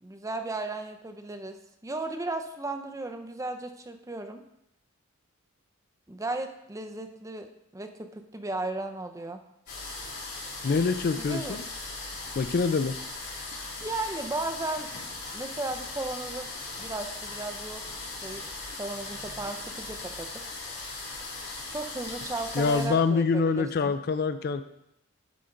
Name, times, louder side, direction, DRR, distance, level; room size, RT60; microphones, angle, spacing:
voice 1, 0.0-4.4 6.1-9.4 11.2-11.6 13.8-14.9 15.3-16.5 16.8-17.8 18.2-18.4 18.8-20.3 21.7-23.9, right 2 dB, 15° right, 6 dB, 0.5 m, -35 dB
sound 1, 9.7-22.9, left 3 dB, 80° left, 3.4 m, -39 dB
voice 2, 10.6-11.6 12.4-13.0 22.6-24.6, left 4 dB, 45° left, 11 dB, 0.4 m, -25 dB
11.5 x 5.2 x 3.8 m, 0.82 s
head